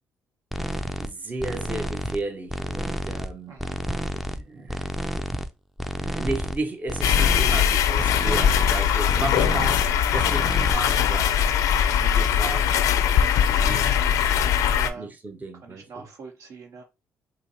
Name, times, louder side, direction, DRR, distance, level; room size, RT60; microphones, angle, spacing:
sound 1, 0.5-1.1 1.4-2.2 2.5-3.3 3.6-4.4 4.7-5.5 5.8-6.6 6.9-7.6 8.0-8.8 9.1-9.9 10.2-10.7, equal, 5° right, 0.4 m, -30 dB
voice 1, 0.9-3.6 4.3-4.9 6.0-11.4 12.0-12.7 13.4-13.9 14.9-16.1, right 2 dB, 30° right, 0.8 m, -34 dB
voice 2, 3.5-3.8 12.3-12.6 13.8-15.1 15.6-16.8, right 4 dB, 65° right, 0.9 m, -43 dB
sound 2, 7.0-14.9, left 8 dB, 70° left, 0.4 m, -21 dB
5.0 x 2.0 x 2.8 m
supercardioid pair, 60°, 6 cm